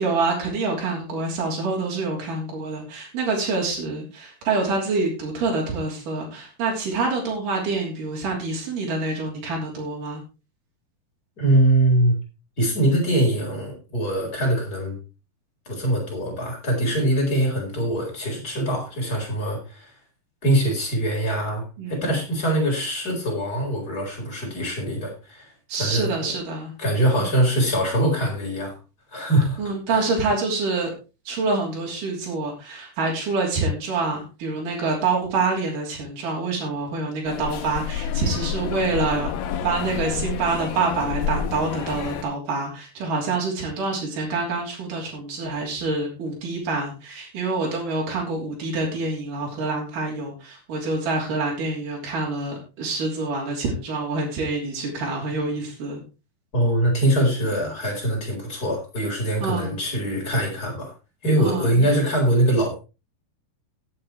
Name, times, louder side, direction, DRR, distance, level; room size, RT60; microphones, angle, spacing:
voice 1, 0.0-10.2 21.8-22.2 25.7-26.7 27.2-27.3 29.6-30.9 31.3-39.3 39.6-56.0 59.4-59.7 61.4-61.9, right 3 dB, 65° right, -2 dB, 4.7 m, -26 dB
voice 2, 11.4-12.2 12.6-15.0 15.7-19.9 20.4-25.5 25.8-26.3 26.8-28.7 29.1-29.6 29.9-30.1 56.5-60.9 61.2-62.7, right 1 dB, 25° left, -1 dB, 4.8 m, -23 dB
sound 1, 37.3-42.2, left 8 dB, 90° left, 2.8 m, -29 dB
17.5 x 8.7 x 3.2 m, 0.30 s
omnidirectional pair, 4.1 m